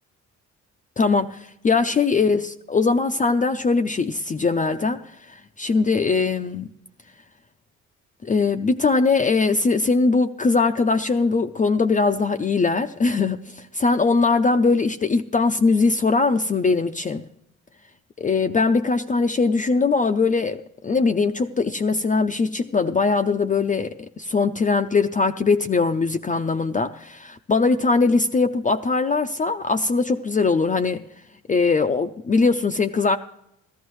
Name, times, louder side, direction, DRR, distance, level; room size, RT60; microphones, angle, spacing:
voice 1, 1.0-5.0 5.3-6.7 8.2-17.2 18.2-31.0 31.5-33.2, left 4 dB, 25° left, 0.5 m, -21 dB
16.0 x 13.5 x 3.1 m
cardioid pair, 90°, 30 cm